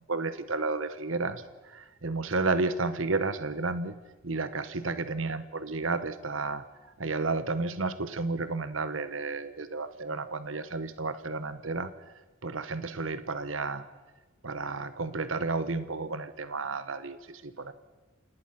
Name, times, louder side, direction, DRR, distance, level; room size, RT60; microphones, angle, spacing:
voice 1, 0.1-3.9 4.2-6.6 7.0-11.9 12.4-13.8 14.4-17.7, right 3 dB, 70° right, 12 dB, 1.1 m, -32 dB
27.0 x 19.0 x 5.9 m, 1.2 s
head